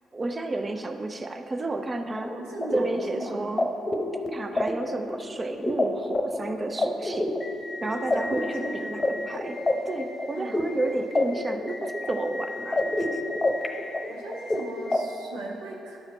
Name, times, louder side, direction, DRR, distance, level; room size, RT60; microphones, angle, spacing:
voice 1, 0.1-2.4 2.7-3.7 4.3-7.4 7.8-12.8 13.1-13.2, right 2 dB, 30° right, 7 dB, 0.6 m, -31 dB
sound 1, 2.2-15.0, left 2 dB, 25° left, 0.9 m, -29 dB
voice 2, 2.3-3.5 7.9-9.2 10.3-10.7 14.1-16.0, right 2 dB, 75° right, -2 dB, 0.8 m, -39 dB
12.0 x 4.9 x 4.1 m, 2.8 s
hypercardioid pair, 40°, 0 cm